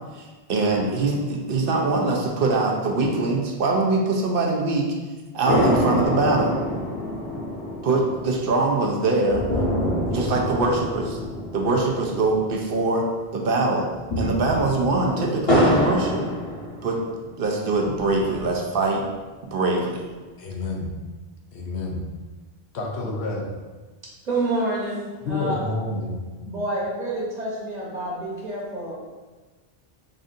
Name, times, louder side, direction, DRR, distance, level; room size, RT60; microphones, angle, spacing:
voice 1, 0.1-4.9 5.3-6.6 7.8-9.4 10.1-11.2 11.5-13.1 13.3-13.9 14.2-16.2 16.8-17.0 17.4-19.0 19.5-20.0, right 3 dB, 65° right, 0 dB, 0.8 m, -23 dB
sound 1, 5.5-13.1 13.3-13.4 13.9-17.2 17.7-18.7, left 1 dB, 65° left, 1.6 m, -26 dB
voice 2, 20.4-20.9 21.5-22.0 22.7-23.5 25.2-26.2, left 2 dB, 85° left, 0 dB, 1.0 m, -29 dB
voice 3, 24.2-25.5 26.4-28.9, right 2 dB, 40° right, -6 dB, 1.1 m, -28 dB
5.2 x 2.6 x 2.5 m, 1.3 s
omnidirectional pair, 1.1 m